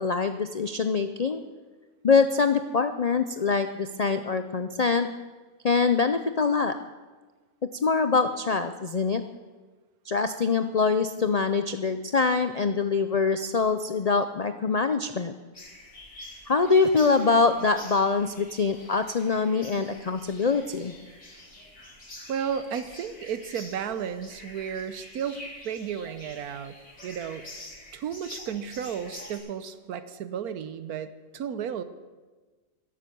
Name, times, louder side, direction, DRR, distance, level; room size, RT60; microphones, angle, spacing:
voice 1, 0.0-1.4 2.0-5.1 5.6-6.8 7.8-9.2 10.0-15.3 16.5-20.9, left 4 dB, 85° left, 9 dB, 0.3 m, -24 dB
sound 1, 15.5-29.4, left 1 dB, 60° left, 4.3 m, -47 dB
voice 2, 22.3-26.7 27.0-27.4 27.9-31.8, right 8 dB, 85° right, 12 dB, 1.3 m, -33 dB
13.5 x 11.0 x 6.9 m, 1.3 s
omnidirectional pair, 1.6 m